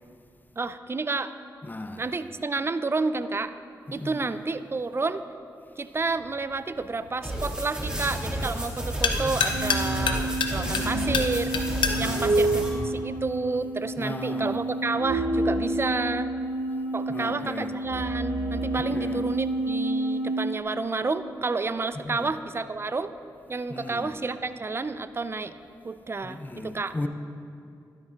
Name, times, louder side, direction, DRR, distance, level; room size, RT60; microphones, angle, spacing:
voice 1, 0.6-1.4 2.0-3.5 3.9-5.2 5.8-11.6 12.0-16.3 16.9-23.1 23.5-25.5 25.8-26.9, right 3 dB, 30° right, 12 dB, 0.4 m, -30 dB
voice 2, 1.6-2.1 3.9-4.4 10.6-11.2 12.0-12.5 14.0-14.6 17.1-17.7 18.8-19.3 21.9-22.3 23.7-24.1 26.2-27.1, left 2 dB, 25° left, 8 dB, 0.6 m, -36 dB
sound 1, 6.0-13.6, left 5 dB, 80° left, 0.6 m, -32 dB
sound 2, 7.2-12.7, right 1 dB, 10° right, 2.1 m, -31 dB
sound 3, 9.4-20.6, right 2 dB, 75° right, 0.8 m, -29 dB
12.5 x 8.3 x 2.5 m, 2.5 s
cardioid pair, 45°, 8 cm